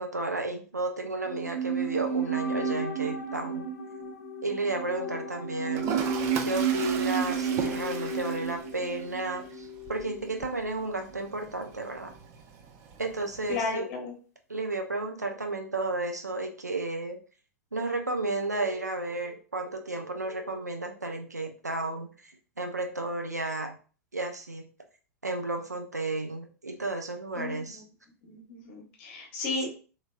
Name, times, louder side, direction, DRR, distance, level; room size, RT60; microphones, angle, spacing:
voice 1, 0.0-3.7 4.4-5.9 6.5-12.1 13.0-13.9 14.5-17.2 17.7-22.1 22.6-23.8 24.1-24.7 25.2-27.8, right 2 dB, 85° right, 4 dB, 0.5 m, -32 dB
sound 1, 1.2-10.6 10.8-10.9, right 5 dB, 65° left, 0.6 m, -32 dB
Toilet flush, 5.7-13.7, right 7 dB, 35° right, 0.5 m, -39 dB
voice 2, 13.5-14.1 27.3-27.8 28.2-29.7, left 3 dB, 45° left, 1 dB, 1.0 m, -34 dB
2.9 x 2.8 x 2.3 m, 0.38 s
figure-of-eight pair, 90°, 9 cm